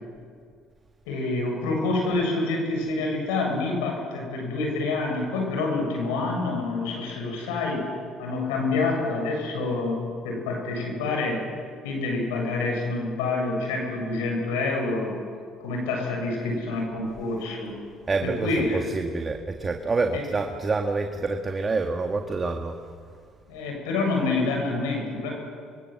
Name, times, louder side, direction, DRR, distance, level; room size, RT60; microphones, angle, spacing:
voice 1, 1.1-7.9 8.2-11.5 11.8-15.2 15.6-17.8 18.2-18.8 20.1-20.2 23.5-25.3, left 3 dB, 85° left, 1 dB, 7.4 m, -27 dB
voice 2, 18.1-22.8, right 3 dB, 30° right, 5 dB, 1.9 m, -27 dB
26.0 x 23.0 x 7.8 m, 2.2 s
hypercardioid pair, 70°, 0 cm